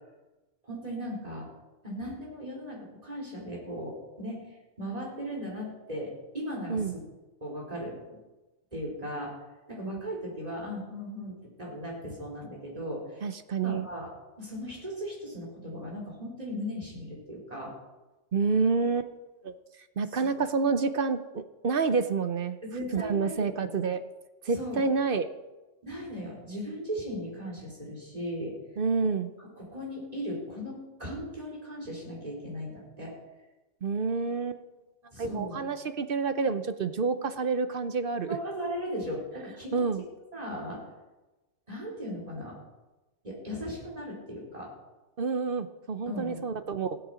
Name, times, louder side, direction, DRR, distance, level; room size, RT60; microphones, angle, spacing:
voice 1, 0.6-1.5 1.8-4.5 4.8-7.0 7.4-8.0 8.7-9.3 9.7-13.3 13.6-14.1 14.4-17.7 20.1-20.3 22.6-23.7 24.5-24.9 25.8-28.6 29.4-33.1 35.1-35.6 38.3-39.8 40.3-40.9 41.7-42.6 43.2-44.7 46.1-46.5, equal, 30° right, -3 dB, 4.5 m, -37 dB
voice 2, 13.2-13.9 18.3-19.1 19.4-19.5 20.0-22.6 22.9-24.0 24.4-25.3 28.8-29.3 33.8-34.6 35.2-38.4 39.7-40.0 45.2-47.0, right 5 dB, 50° right, 11 dB, 0.9 m, -28 dB
16.0 x 12.0 x 5.0 m, 1.1 s
omnidirectional pair, 1.3 m